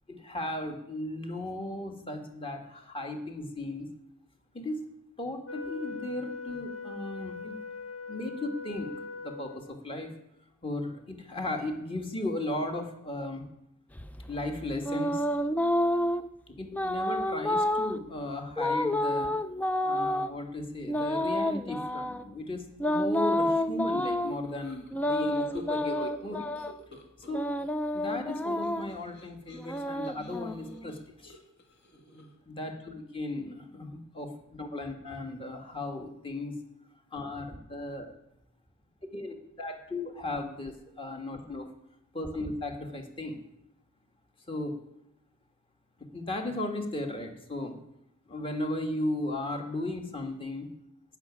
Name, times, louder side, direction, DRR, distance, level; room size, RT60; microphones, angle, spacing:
voice 1, 0.1-3.9 4.5-4.9 5.2-7.6 8.1-10.1 10.6-13.5 14.3-15.2 16.5-19.3 19.8-26.5 27.3-27.5 27.9-31.4 32.5-36.6 37.1-38.1 39.1-41.7 42.1-43.4 44.5-44.8 46.0-47.8 48.3-50.7, left 1 dB, 25° left, 4 dB, 1.8 m, -36 dB
Wind instrument woodwind instrument, 5.4-9.8, left 4 dB, 70° left, 2.0 m, -41 dB
sound 1, 14.0-16.3 16.7-18.0 18.6-20.3 20.9-22.2 22.8-24.3 24.9-26.8 27.3-29.0 29.5-30.9, left 1 dB, 5° left, 0.4 m, -29 dB
sound 2, 24.2-27.7 28.0-32.5, left 2 dB, 50° left, 2.0 m, -49 dB
14.5 x 6.1 x 9.7 m, 0.82 s
head